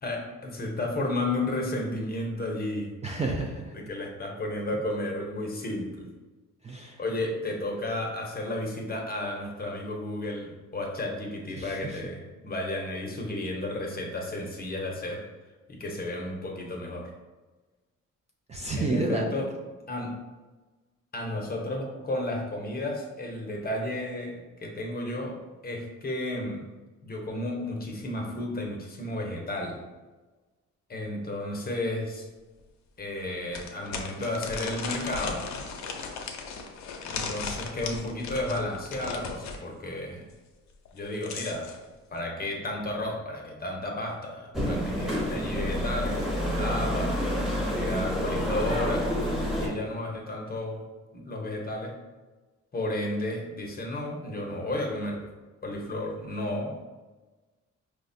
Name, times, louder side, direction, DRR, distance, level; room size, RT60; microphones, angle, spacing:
voice 1, 0.0-2.9 3.7-6.1 7.0-15.2 15.7-17.1 18.8-19.5 19.9-20.1 21.1-25.4 25.6-26.6 27.0-29.8 30.9-32.3 33.0-35.4 37.0-40.2 40.9-41.7 42.1-49.1 49.6-50.8 51.1-51.9 52.7-55.3 55.6-56.8, left 1 dB, 30° left, 1 dB, 0.7 m, -33 dB
voice 2, 3.0-3.7 6.6-7.0 11.6-12.0 18.5-19.5, right 2 dB, 25° right, 0 dB, 0.4 m, -30 dB
sound 1, 32.0-32.1 32.6-32.7 33.5-39.6 40.8-41.8, left 5 dB, 65° left, 0.5 m, -36 dB
sound 2, 44.5-49.7, equal, ahead, 0.9 m, -28 dB
4.8 x 2.1 x 2.6 m, 1.2 s
cardioid pair, 90°, 30 cm